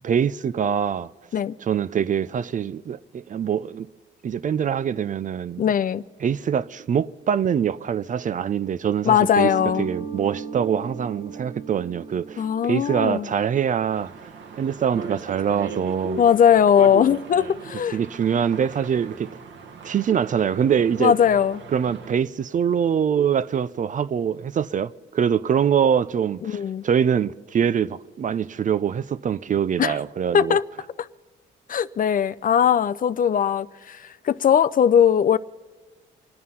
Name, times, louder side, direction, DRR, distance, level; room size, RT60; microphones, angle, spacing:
voice 1, 0.0-1.1 1.6-3.9 4.2-5.6 6.2-9.5 9.8-16.2 17.9-19.3 19.8-21.1 21.7-30.6, right 8 dB, 40° right, 0.5 m, -24 dB
voice 2, 5.6-6.0 9.0-9.9 12.4-13.3 16.2-18.0 21.0-21.6 26.4-26.8 29.8-30.0 30.3-30.6 31.0-31.1 31.7-35.4, left 8 dB, 45° left, 0.5 m, -19 dB
Mallet percussion, 9.4-14.9, right 6 dB, 20° right, 1.5 m, -37 dB
sound 1, 13.9-22.1, right 3 dB, 70° right, 1.5 m, -38 dB
26.0 x 9.4 x 5.6 m
cardioid pair, 90°, 20 cm